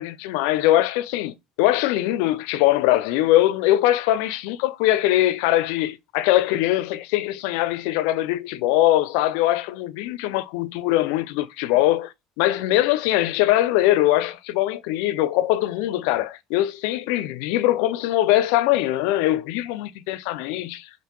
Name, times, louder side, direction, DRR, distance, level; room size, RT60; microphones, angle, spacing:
voice 1, 0.0-20.9, left 14 dB, 85° left, 0.4 m, -22 dB
3.8 x 2.7 x 3.7 m
cardioid pair, 125°, 0 cm